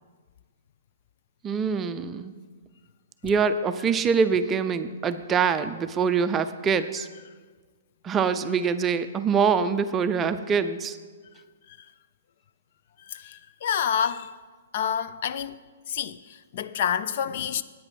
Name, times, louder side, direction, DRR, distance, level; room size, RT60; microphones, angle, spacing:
voice 1, 1.4-2.3 3.2-7.1 8.0-11.0, right 6 dB, 15° right, 0.4 m, -24 dB
voice 2, 7.0-7.3 11.7-11.9 13.0-14.4 14.7-15.6 15.9-17.6, left 8 dB, 50° left, 0.4 m, -29 dB
8.8 x 8.7 x 6.1 m
hypercardioid pair, 150°, 0 cm